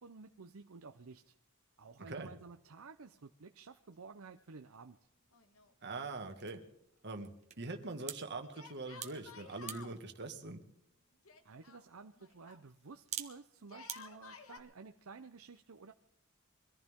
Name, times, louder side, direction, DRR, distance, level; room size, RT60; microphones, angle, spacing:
voice 1, 0.0-1.3 1.8-5.0 11.4-15.9, right 4 dB, 80° right, 7 dB, 0.7 m, -53 dB
voice 2, 2.0-2.3 5.8-6.7 7.0-7.3 7.6-10.6, right 3 dB, 55° right, 5 dB, 1.9 m, -43 dB
sound 1, 4.6-14.0, right 9 dB, 35° right, 1.5 m, -51 dB
Yell, 5.3-6.2 6.4-6.5 8.5-10.0 11.2-12.6 13.6-14.6, left 4 dB, 70° left, 1.5 m, -53 dB
23.5 x 14.5 x 3.6 m, 0.79 s
head